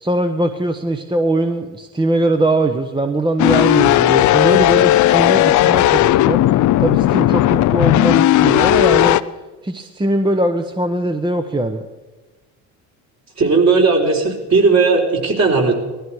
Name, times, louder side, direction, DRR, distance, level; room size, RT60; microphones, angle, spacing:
voice 1, 0.0-6.4 6.8-9.2 9.6-11.8, right 1 dB, 10° right, 6 dB, 1.0 m, -20 dB
sound 1, 3.4-9.2, left 14 dB, 50° left, 0.6 m, -14 dB
voice 2, 13.4-15.7, right 4 dB, 45° right, 0 dB, 4.0 m, -15 dB
19.0 x 13.5 x 4.7 m, 1.2 s
supercardioid pair, 85°, 39 cm